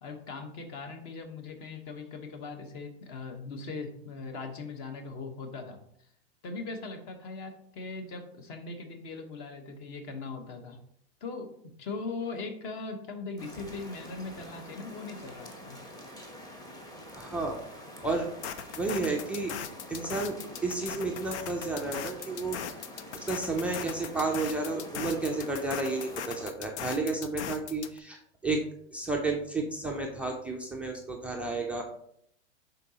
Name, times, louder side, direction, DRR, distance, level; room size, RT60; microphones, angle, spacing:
voice 1, 0.0-5.8 6.4-10.8 11.2-15.8, left 3 dB, 40° left, 6 dB, 1.1 m, -40 dB
sound 1, 13.4-26.5, equal, 10° left, 0.9 m, -46 dB
voice 2, 17.1-17.6 18.0-18.3 18.7-19.5 19.9-22.6 23.1-28.6 28.9-31.8, right 3 dB, 5° right, 1 dB, 0.3 m, -32 dB
sound 2, 18.4-28.0, left 9 dB, 85° left, 0.7 m, -39 dB
11.5 x 3.9 x 2.8 m, 0.70 s
supercardioid pair, 140°, 33 cm